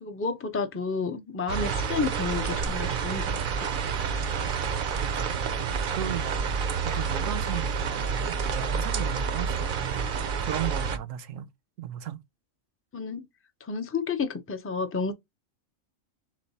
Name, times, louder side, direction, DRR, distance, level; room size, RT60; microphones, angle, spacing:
voice 1, 0.0-3.4 12.9-13.3 13.6-15.1, left 4 dB, 20° left, 0.3 m, -31 dB
sound 1, 1.5-11.0, right 6 dB, 55° right, 0.5 m, -29 dB
voice 2, 4.2-4.6 4.9-6.4 6.9-10.1 10.4-11.5 11.8-12.2, right 10 dB, 80° right, 1.0 m, -36 dB
3.7 x 3.2 x 4.0 m
omnidirectional pair, 1.4 m